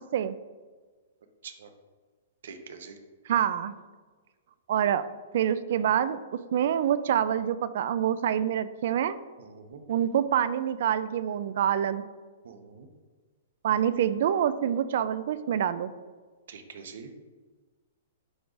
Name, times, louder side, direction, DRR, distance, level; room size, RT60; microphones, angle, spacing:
voice 1, 2.4-3.0 9.4-9.8 12.4-12.9 16.5-17.1, right 5 dB, 65° right, 7 dB, 0.8 m, -45 dB
voice 2, 3.3-3.7 4.7-5.0 5.3-6.2 6.5-9.2 9.9-12.0 13.6-15.9, right 9 dB, 50° right, 15 dB, 0.3 m, -26 dB
11.5 x 3.9 x 2.5 m, 1.4 s
hypercardioid pair, 175°, 0 cm